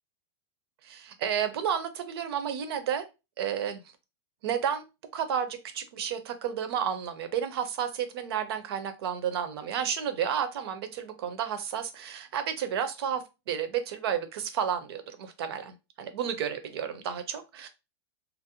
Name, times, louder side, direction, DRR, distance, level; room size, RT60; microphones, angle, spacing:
voice 1, 0.8-3.0 3.4-3.8 4.4-4.8 5.1-17.7, right 8 dB, 60° right, 0.6 m, -31 dB
2.5 x 2.0 x 2.7 m
supercardioid pair, 165°, 14 cm